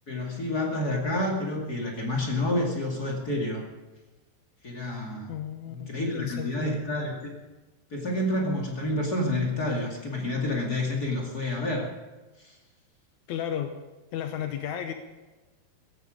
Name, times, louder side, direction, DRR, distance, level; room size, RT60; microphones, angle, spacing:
voice 1, 0.1-3.7 4.6-5.3 5.7-7.3 7.9-11.9 12.4-12.5, left 1 dB, 30° left, 0 dB, 2.1 m, -29 dB
voice 2, 5.3-6.8 13.3-13.7 14.1-14.9, left 9 dB, 80° left, 6 dB, 1.7 m, -33 dB
16.5 x 15.0 x 5.2 m, 1.2 s
omnidirectional pair, 4.8 m